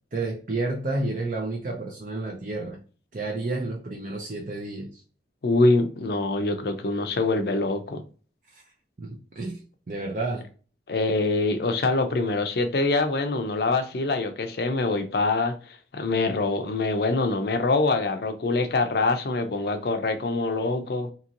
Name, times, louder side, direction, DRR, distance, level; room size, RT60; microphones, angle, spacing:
voice 1, 0.1-2.8 3.1-5.0 8.5-8.6 9.0-9.6 9.9-10.5, right 2 dB, 50° right, 0.5 m, -30 dB
voice 2, 5.4-8.0 10.9-15.6 15.9-21.1, left 3 dB, 60° left, 0.5 m, -24 dB
2.9 x 2.9 x 2.5 m
head